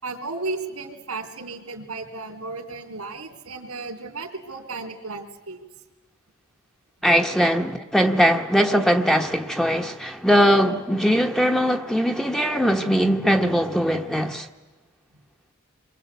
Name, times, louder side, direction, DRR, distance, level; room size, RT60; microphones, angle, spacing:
voice 1, 0.0-5.6, right 3 dB, 90° right, 3.5 m, -34 dB
voice 2, 7.0-14.5, equal, ahead, 1.2 m, -20 dB
29.0 x 23.5 x 8.3 m
head